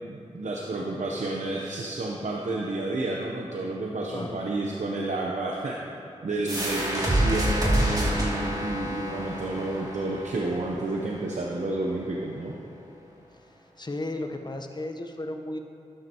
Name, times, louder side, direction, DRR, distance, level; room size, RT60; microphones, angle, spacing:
voice 1, 0.1-5.8 6.2-12.5, right 2 dB, 70° right, -1 dB, 0.8 m, -30 dB
voice 2, 4.1-4.4 13.8-15.6, left 1 dB, 35° left, 4 dB, 1.0 m, -34 dB
sound 1, 6.5-11.9, right 1 dB, 30° right, 2.6 m, -28 dB
12.5 x 9.4 x 3.0 m, 2.6 s
cardioid pair, 45°, 13 cm